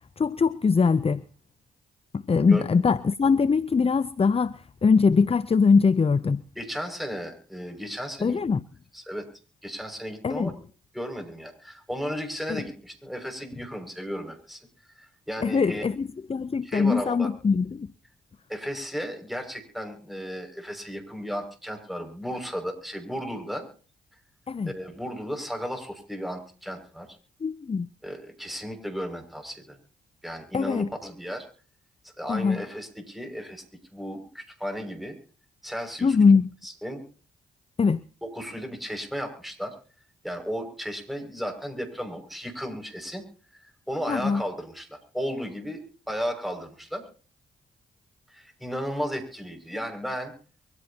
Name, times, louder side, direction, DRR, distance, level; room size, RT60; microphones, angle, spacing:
voice 1, 0.2-1.2 2.1-6.4 8.2-8.6 10.2-10.5 12.5-12.6 15.4-17.9 24.5-24.7 27.4-27.9 30.5-30.9 32.3-32.6 36.0-36.5 37.8-38.0 44.1-44.4, left 5 dB, 30° left, 0.6 m, -22 dB
voice 2, 6.5-8.4 8.9-9.2 9.6-10.5 10.9-14.7 15.3-15.8 16.6-17.3 18.5-23.7 24.7-27.1 28.0-29.8 30.2-31.5 32.2-33.6 33.9-35.2 35.6-36.2 36.6-37.0 38.2-39.7 40.2-43.2 43.6-47.0 48.3-50.3, equal, ahead, 6.1 m, -34 dB
24.0 x 15.0 x 2.9 m
hypercardioid pair, 45°, 21 cm